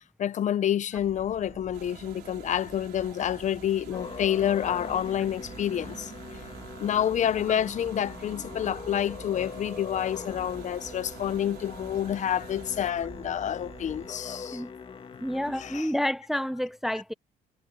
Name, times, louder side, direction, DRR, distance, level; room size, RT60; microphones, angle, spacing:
voice 1, 0.2-6.1 6.8-14.6 15.6-15.9, left 10 dB, 45° left, 0.7 m, -28 dB
Insect / Frog, 0.9-14.1, right 6 dB, 40° right, 3.0 m, -48 dB
sound 1, 1.7-12.9, right 13 dB, 70° right, 4.1 m, -50 dB
Musical instrument, 3.9-15.8, left 5 dB, 30° left, 1.9 m, -42 dB
voice 2, 15.2-17.1, equal, ahead, 0.6 m, -29 dB
cardioid pair, 110°, 17 cm